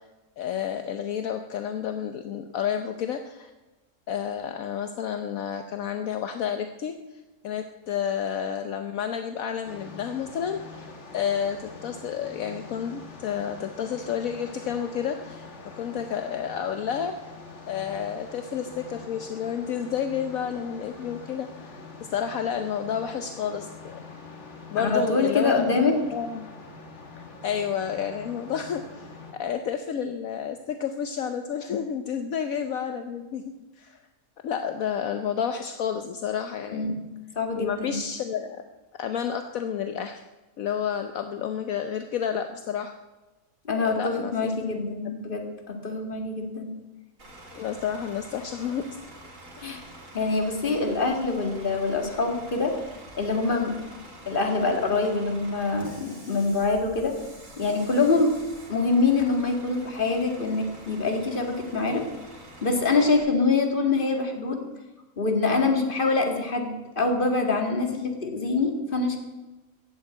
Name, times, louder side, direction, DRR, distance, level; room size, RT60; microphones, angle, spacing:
voice 1, 0.4-3.5 4.1-6.9 7.4-10.9 11.1-15.5 15.7-17.3 17.7-21.8 22.1-24.0 24.7-26.5 27.4-33.4 33.8-34.0 34.4-37.0 37.6-38.6 39.0-40.2 40.6-42.9 43.7-44.5 45.0-45.1 47.5-48.9 49.6-49.8, left 8 dB, 70° left, 7 dB, 1.2 m, -30 dB
sound 1, 9.6-29.3, left 3 dB, 50° left, 2.2 m, -44 dB
voice 2, 24.8-25.9 36.7-36.9 37.4-38.0 43.7-46.7 49.6-49.8 50.1-52.7 53.1-53.7 54.3-57.2 57.6-58.3 58.7-62.1 62.6-64.6 65.2-69.2, left 3 dB, 35° left, 3 dB, 2.2 m, -25 dB
Bus / Idling, 47.2-63.2, right 1 dB, 60° right, 3.5 m, -46 dB
15.0 x 8.3 x 8.9 m, 1.1 s
omnidirectional pair, 1.5 m